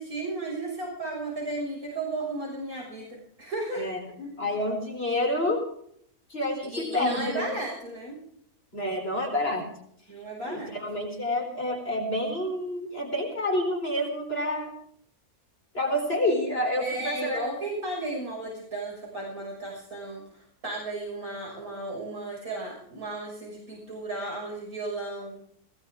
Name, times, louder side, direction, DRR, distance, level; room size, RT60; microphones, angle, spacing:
voice 1, 0.0-3.9 4.2-4.3 6.6-8.2 10.1-10.7 16.8-20.2 20.6-25.4, right 2 dB, 70° right, -3 dB, 6.7 m, -34 dB
voice 2, 4.4-5.6 6.3-7.5 8.7-9.6 10.5-14.7 15.7-17.5, left 1 dB, 40° left, 2 dB, 4.4 m, -28 dB
19.5 x 19.0 x 3.7 m, 0.67 s
omnidirectional pair, 1.6 m